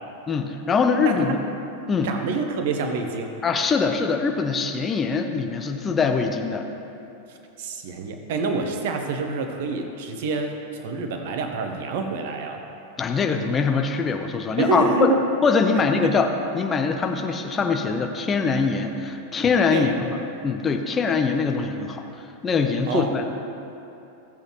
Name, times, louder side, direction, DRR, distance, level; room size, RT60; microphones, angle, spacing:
voice 1, 0.3-1.4 1.9-2.1 3.4-6.7 13.0-15.1 15.4-20.1 20.4-22.0 22.4-23.3, left 5 dB, 20° left, 4 dB, 0.9 m, -23 dB
voice 2, 1.0-1.4 2.0-3.4 7.3-12.6 14.6-15.2 16.0-16.1 19.7-20.0 22.9-23.1, right 4 dB, 55° right, 4 dB, 1.0 m, -27 dB
16.0 x 7.7 x 3.1 m, 2.9 s
figure-of-eight pair, 90°, 0 cm